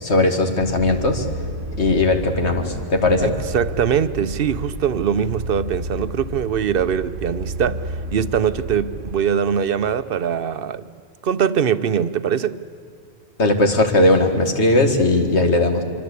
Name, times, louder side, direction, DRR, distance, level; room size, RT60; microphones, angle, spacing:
voice 1, 0.0-1.2 1.8-3.3 13.4-15.8, left 2 dB, 85° left, 5 dB, 2.3 m, -18 dB
sound 1, 0.6-9.2, right 2 dB, 75° right, 1.5 m, -31 dB
voice 2, 3.2-10.9 11.2-12.6, right 8 dB, 60° right, 13 dB, 1.0 m, -22 dB
25.0 x 25.0 x 8.5 m, 2.2 s
omnidirectional pair, 1.1 m